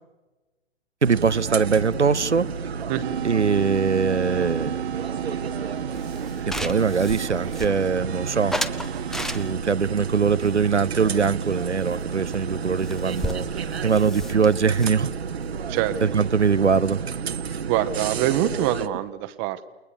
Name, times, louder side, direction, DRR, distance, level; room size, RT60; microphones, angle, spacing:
sound 1, 1.0-18.9, right 6 dB, 65° right, 1.4 m, -31 dB
voice 1, 1.0-2.5 3.2-4.8 6.5-8.5 9.3-15.1 16.0-17.0, right 5 dB, 90° right, 0.9 m, -22 dB
sound 2, 3.0-9.5, right 12 dB, 50° right, 0.7 m, -35 dB
sound 3, 6.0-8.1 8.5-9.8 10.4-11.6 11.9-12.0 12.3-12.4 12.6-16.5, equal, ahead, 0.7 m, -34 dB
voice 2, 17.6-19.6, right 13 dB, 30° right, 1.1 m, -25 dB
29.5 x 21.0 x 6.9 m
figure-of-eight pair, 115°, 34 cm